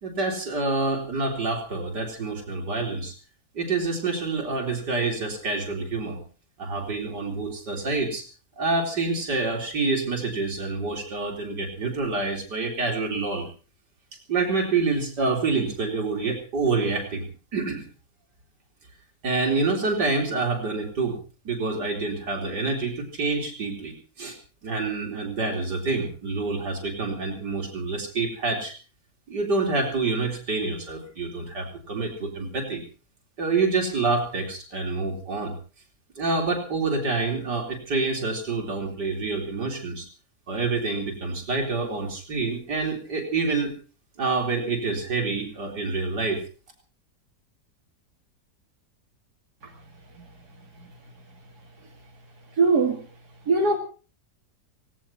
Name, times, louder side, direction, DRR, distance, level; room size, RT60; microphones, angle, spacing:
voice 1, 0.0-3.1 3.5-6.2 6.6-8.2 8.6-13.5 14.3-17.3 17.5-17.8 19.2-21.2 21.4-24.4 24.6-28.7 29.3-32.8 33.4-35.6 36.2-40.1 40.5-43.7 44.2-46.4, right 3 dB, 85° right, 4.7 m, -27 dB
voice 2, 52.6-53.0 53.5-53.8, right 3 dB, 70° right, 3.1 m, -20 dB
18.5 x 17.5 x 4.3 m
omnidirectional pair, 1.8 m